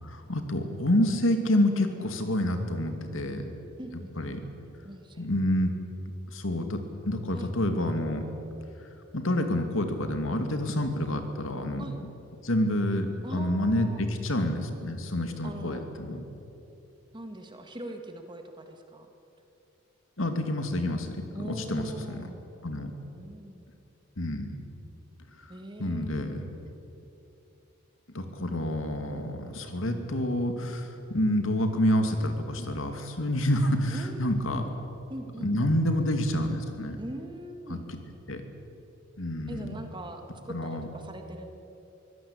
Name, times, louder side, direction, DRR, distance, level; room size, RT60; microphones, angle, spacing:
voice 1, 0.0-3.5 4.2-4.4 5.2-5.7 6.3-6.8 7.0-8.2 9.1-12.1 12.4-16.2 20.2-22.3 22.6-22.9 24.2-24.6 25.4-25.5 25.8-26.4 28.1-34.6 35.4-37.0 37.7-38.0 38.3-38.4 39.2-39.7 40.5-40.9, left 1 dB, 80° left, 6 dB, 2.5 m, -28 dB
voice 2, 3.8-4.4 4.8-5.3 7.3-7.5 11.8-12.0 13.2-14.0 15.4-15.8 17.1-19.1 21.3-22.4 23.0-23.7 25.5-26.6 33.9-34.2 34.5-34.7 35.1-35.7 37.0-37.9 39.5-41.5, right 1 dB, 20° right, 5 dB, 1.8 m, -42 dB
24.0 x 17.0 x 8.7 m, 2.9 s
head